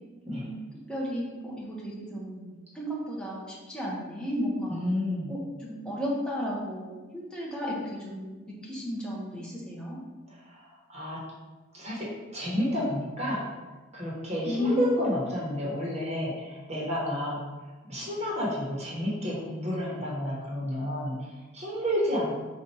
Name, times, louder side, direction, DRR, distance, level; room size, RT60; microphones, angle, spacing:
voice 1, 0.9-4.8 5.3-10.0 14.4-14.9, equal, 5° left, -5 dB, 0.9 m, -33 dB
voice 2, 4.7-5.3 10.3-11.2 11.7-13.5 13.9-17.4 17.9-22.4, equal, 35° right, -5 dB, 1.1 m, -31 dB
4.4 x 2.5 x 4.2 m, 1.2 s
head